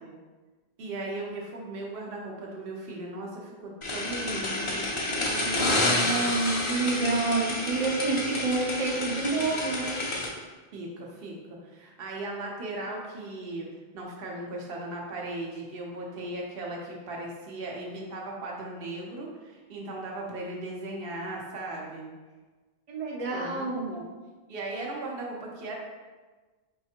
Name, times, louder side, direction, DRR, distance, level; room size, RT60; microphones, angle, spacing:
voice 1, 0.8-6.3 10.7-13.7 13.9-22.1 23.3-24.0 24.5-25.8, right 2 dB, 65° right, -2 dB, 1.0 m, -37 dB
sound 1, 3.8-10.3, left 2 dB, 35° left, 0.6 m, -29 dB
voice 2, 5.9-10.0 22.9-23.9, right 3 dB, 40° right, -3 dB, 0.6 m, -28 dB
4.8 x 3.3 x 2.8 m, 1.3 s
omnidirectional pair, 1.1 m